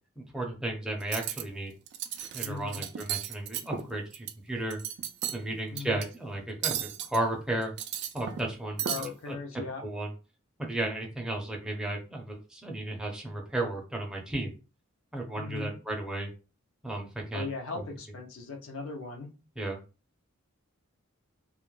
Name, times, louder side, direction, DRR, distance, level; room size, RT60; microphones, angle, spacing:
voice 1, 0.2-1.7 2.3-4.8 5.3-7.7 8.1-8.8 9.3-9.4 9.8-10.1 10.6-14.5 15.1-16.3 16.8-17.5 17.7-17.8 19.6-19.8, right 1 dB, 5° right, 0 dB, 0.6 m, -34 dB
Cutlery silverware, 1.0-1.4 1.9-2.5 2.7-4.3 4.7-5.4 5.8-6.0 6.6-7.2 7.6-8.5 8.8-9.1, right 10 dB, 55° right, 0.3 m, -34 dB
voice 2, 2.4-2.8 5.7-6.1 8.8-9.8 15.3-15.8 17.3-19.3, left 4 dB, 75° left, 2 dB, 0.5 m, -38 dB
2.4 x 2.1 x 3.0 m, 0.33 s
head